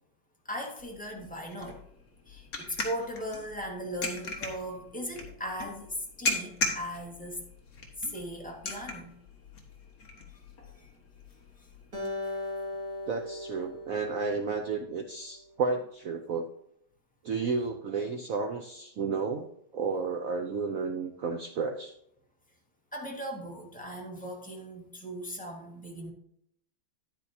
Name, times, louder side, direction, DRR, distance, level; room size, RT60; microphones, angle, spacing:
voice 1, 0.4-1.8 2.3-7.4 8.0-9.2 10.3-10.4 10.7-10.9 12.2-12.4 22.9-26.1, equal, 5° left, -1 dB, 1.4 m, -38 dB
sound 1, 0.8-12.1, left 3 dB, 45° left, 1.8 m, -39 dB
Acoustic guitar, 11.9-15.3, left 2 dB, 40° right, 2.5 m, -38 dB
voice 2, 13.1-16.5 17.2-19.5 19.7-21.9, right 4 dB, 80° right, 5 dB, 0.7 m, -32 dB
10.0 x 9.0 x 2.8 m, 0.72 s
omnidirectional pair, 2.3 m